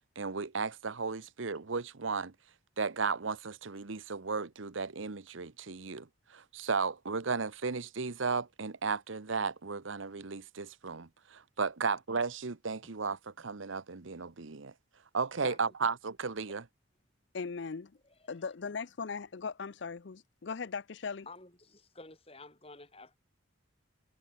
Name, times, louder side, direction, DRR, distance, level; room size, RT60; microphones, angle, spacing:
voice 1, 0.2-2.3 2.8-14.7 15.1-16.6, right 4 dB, 80° right, 1.0 m, -35 dB
voice 2, 17.3-18.0 18.3-21.3, left 5 dB, 60° left, 0.5 m, -39 dB
voice 3, 21.3-23.2, left 2 dB, 30° left, 7.1 m, -50 dB
head